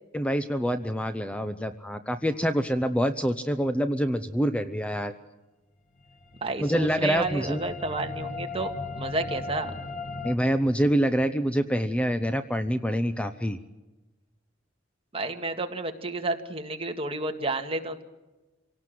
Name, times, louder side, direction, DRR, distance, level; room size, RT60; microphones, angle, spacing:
voice 1, 0.1-5.1 6.6-7.6 10.2-13.6, equal, 5° left, 10 dB, 0.8 m, -26 dB
sound 1, 6.0-10.4, left 3 dB, 45° left, 1.5 m, -37 dB
voice 2, 6.4-8.7 9.0-9.7 15.1-18.0, right 2 dB, 30° right, 5 dB, 2.0 m, -31 dB
27.0 x 18.0 x 7.7 m, 1.1 s
head